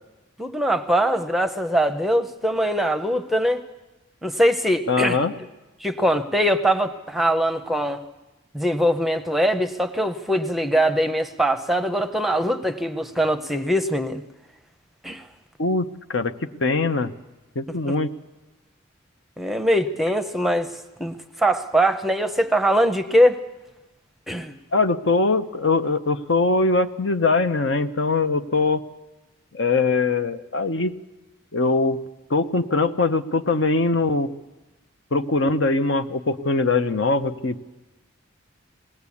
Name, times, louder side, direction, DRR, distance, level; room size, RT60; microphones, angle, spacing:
voice 1, 0.4-3.6 4.2-5.2 5.8-8.0 8.5-14.2 15.0-15.2 17.9-18.0 19.4-20.7 21.0-23.4 24.3-24.5, equal, ahead, 8 dB, 0.7 m, -22 dB
voice 2, 4.9-5.3 15.6-17.1 17.6-18.1 24.7-28.8 29.5-30.9 31.5-32.0 32.3-34.3 35.1-37.8, left 3 dB, 65° left, 9 dB, 0.8 m, -22 dB
20.5 x 17.0 x 8.5 m, 1.1 s
head